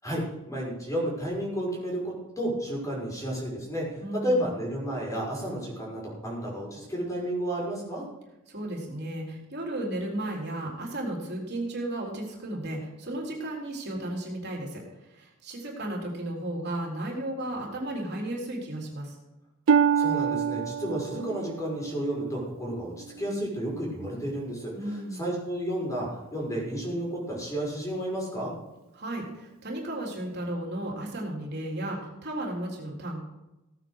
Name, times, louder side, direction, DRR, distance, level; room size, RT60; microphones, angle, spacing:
voice 1, 0.0-3.9 4.1-8.0 20.0-28.5, equal, 15° left, -2 dB, 5.6 m, -32 dB
voice 2, 4.0-4.5 8.5-14.8 15.1-19.2 24.7-25.3 28.9-33.2, right 1 dB, 50° right, -1 dB, 3.9 m, -34 dB
Harp, 19.7-23.4 24.0-24.4 25.0-25.1, right 7 dB, 65° right, 0.4 m, -27 dB
17.0 x 9.0 x 6.5 m, 0.97 s
head